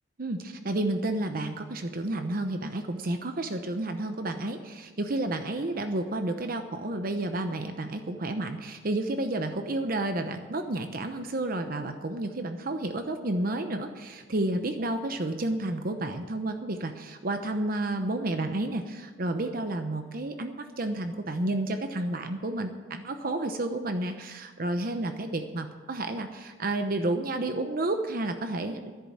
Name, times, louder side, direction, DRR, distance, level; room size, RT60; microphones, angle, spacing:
voice 1, 0.2-28.9, right 2 dB, 50° right, 7 dB, 0.9 m, -31 dB
11.5 x 10.5 x 7.8 m, 1.4 s
head